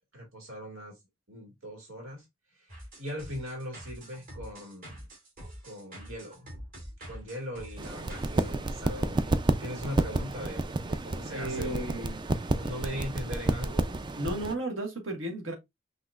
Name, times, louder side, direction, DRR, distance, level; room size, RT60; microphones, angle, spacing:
voice 1, 0.1-1.0 1.3-2.3 2.5-5.1 5.6-6.5 7.0-12.0 12.6-14.0, equal, 90° right, 2.2 m, -40 dB
sound 1, 2.7-8.5, equal, 45° right, 2.4 m, -46 dB
sound 2, 7.8-14.5, right 2 dB, 25° right, 0.4 m, -30 dB
voice 2, 11.3-12.2 14.2-15.5, right 1 dB, 70° right, 1.6 m, -33 dB
5.8 x 3.0 x 2.4 m
head